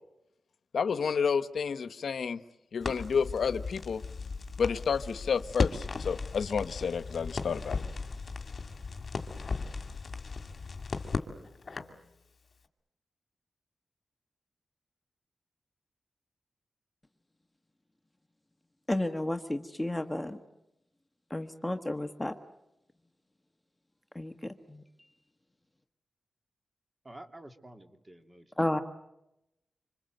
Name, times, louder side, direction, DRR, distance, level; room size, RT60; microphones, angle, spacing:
voice 1, 0.7-2.4 2.7-4.0 4.6-7.8, left 6 dB, 75° left, 13 dB, 1.0 m, -30 dB
Crackle, 2.8-12.0, left 4 dB, 50° left, 2.5 m, -36 dB
voice 2, 18.9-20.4 21.3-22.4 24.1-25.1 28.6-28.8, left 1 dB, 10° left, 7 dB, 1.3 m, -32 dB
voice 3, 27.0-28.5, right 1 dB, 20° right, 6 dB, 2.7 m, -50 dB
26.5 x 26.5 x 7.9 m, 0.88 s
wide cardioid pair, 105°, 0 cm